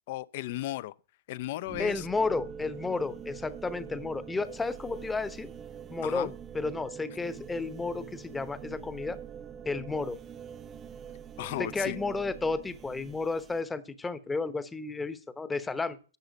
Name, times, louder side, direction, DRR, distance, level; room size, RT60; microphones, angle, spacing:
voice 1, 0.1-0.9 1.3-2.1 6.0-6.3 11.4-12.0, left 15 dB, 55° left, 0.6 m, -35 dB
sound 1, 1.7-13.6, right 8 dB, 20° right, 0.6 m, -45 dB
voice 2, 1.8-5.5 5.9-9.2 9.6-10.2 11.6-16.0, left 3 dB, 10° left, 0.9 m, -32 dB
10.5 x 7.1 x 8.2 m
hypercardioid pair, 140°, 0 cm